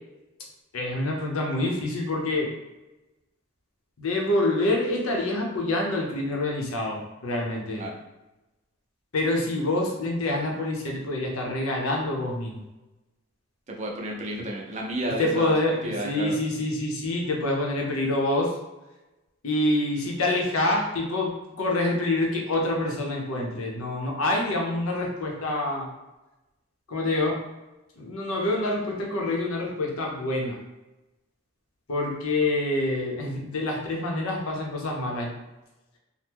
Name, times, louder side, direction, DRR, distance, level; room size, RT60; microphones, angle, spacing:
voice 1, 0.7-2.5 4.0-7.8 9.1-12.6 15.2-18.5 19.4-25.9 26.9-27.4 28.0-30.6 31.9-35.3, left 2 dB, 85° left, 0 dB, 0.7 m, -26 dB
voice 2, 13.7-16.4, right 1 dB, 30° right, -1 dB, 0.5 m, -32 dB
2.9 x 2.1 x 3.5 m, 1.0 s
head